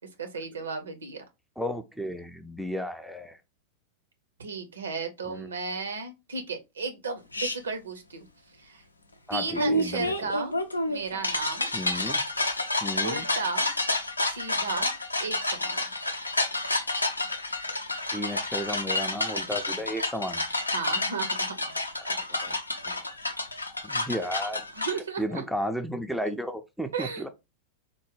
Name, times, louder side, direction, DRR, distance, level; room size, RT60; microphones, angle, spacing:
voice 1, 0.2-1.2 4.4-8.3 8.6-8.8 9.3-10.5 10.9-11.7 13.0-13.7 14.3-14.9 15.2-15.8 20.7-21.5 24.8-25.4 26.9-27.3, right 4 dB, 70° right, 0.6 m, -34 dB
voice 2, 1.6-3.4 5.3-5.5 9.3-10.3 11.7-12.2 12.8-13.3 18.1-20.4 22.0-22.6 22.9-23.0 23.8-24.7 25.2-27.3, equal, ahead, 0.4 m, -33 dB
sound 1, 7.3-7.6 9.5-25.0, left 2 dB, 80° left, 0.5 m, -29 dB
3.7 x 2.1 x 3.1 m
figure-of-eight pair, 90°, 0 cm